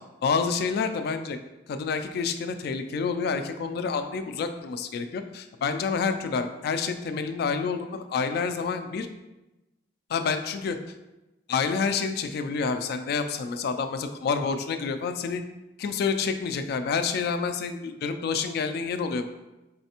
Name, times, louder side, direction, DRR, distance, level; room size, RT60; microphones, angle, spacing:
voice 1, 0.2-1.4 1.7-9.1 10.1-10.8 11.5-15.4 15.8-19.3, left 5 dB, 60° left, 9 dB, 0.3 m, -28 dB
4.0 x 3.2 x 2.9 m, 1.0 s
head